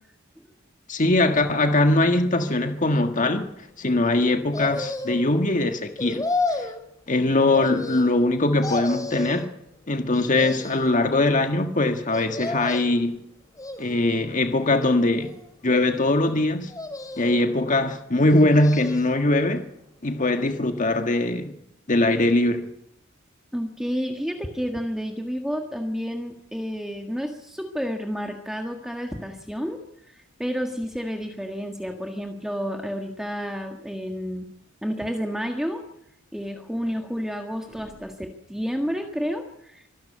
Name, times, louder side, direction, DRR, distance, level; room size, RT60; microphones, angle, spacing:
voice 1, 0.9-3.5 3.8-6.3 6.6-6.7 7.1-9.5 9.9-13.2 13.8-15.3 15.6-16.7 17.2-19.6 20.0-21.6 21.9-22.7, left 2 dB, 40° left, 1.6 m, -21 dB
sound 1, 4.5-5.3 6.0-6.8 7.5-8.3 8.6-9.5 10.1-10.9 12.1-13.0 13.6-14.3 14.9-15.7 16.7-17.5 18.2-19.2 19.6-19.7, left 3 dB, 20° left, 2.7 m, -32 dB
voice 2, 23.5-29.8 30.1-34.5 34.8-35.9 36.3-39.9, equal, ahead, 1.7 m, -30 dB
25.0 x 12.0 x 8.6 m
head